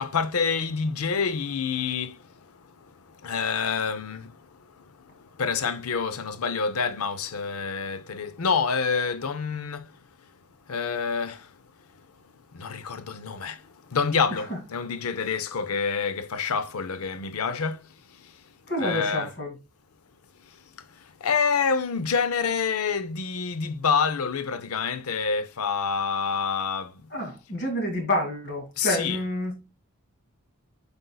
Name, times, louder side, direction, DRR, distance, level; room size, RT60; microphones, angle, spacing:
voice 1, 0.0-9.9 10.7-11.5 12.5-17.9 18.2-18.4 18.8-19.3 21.0-27.0 28.8-29.2, left 5 dB, 80° left, 0.6 m, -28 dB
voice 2, 18.7-19.6 27.1-29.5, left 1 dB, 50° left, 2.3 m, -28 dB
7.9 x 5.2 x 2.3 m
head